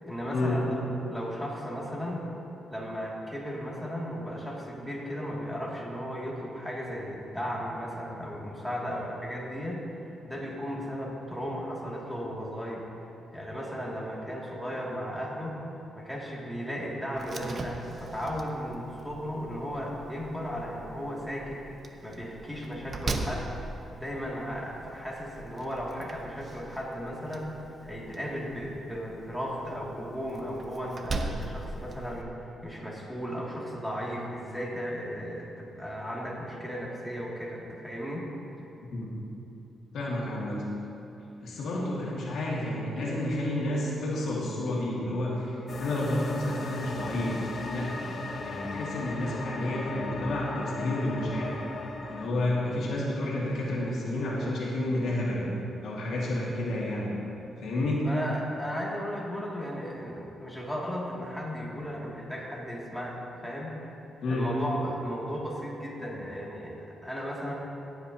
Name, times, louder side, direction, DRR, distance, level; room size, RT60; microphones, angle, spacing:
voice 1, 0.0-2.2 2.7-12.8 13.3-15.6 15.9-21.6 22.0-23.5 24.0-38.3 58.0-63.8 64.3-67.5, equal, ahead, -5 dB, 2.4 m, -35 dB
Slam, 17.2-32.2, right 2 dB, 45° right, 0.8 m, -40 dB
voice 2, 39.9-40.6 41.4-48.1 48.4-51.6 52.1-55.5 55.8-57.1 57.6-58.0 64.2-64.5, left 1 dB, 75° left, -4 dB, 2.0 m, -30 dB
sound 1, 45.7-52.3, left 3 dB, 50° left, 1.1 m, -37 dB
17.5 x 8.0 x 2.8 m, 2.9 s
cardioid pair, 80°, 0 cm